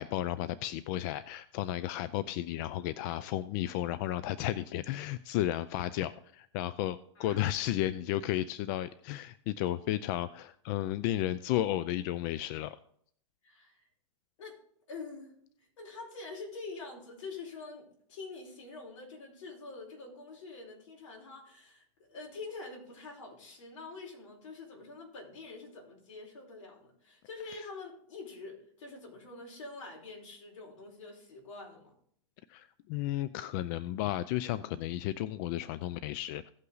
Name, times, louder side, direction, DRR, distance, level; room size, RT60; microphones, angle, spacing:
voice 1, 0.0-12.8 27.5-27.6 32.5-36.5, left 13 dB, 35° left, 15 dB, 0.4 m, -33 dB
voice 2, 7.1-7.4 13.4-13.9 14.4-14.6 14.9-15.3 15.6-31.9, left 3 dB, 70° left, -1 dB, 4.7 m, -46 dB
16.0 x 5.6 x 4.0 m, 0.64 s
supercardioid pair, 150°, 17 cm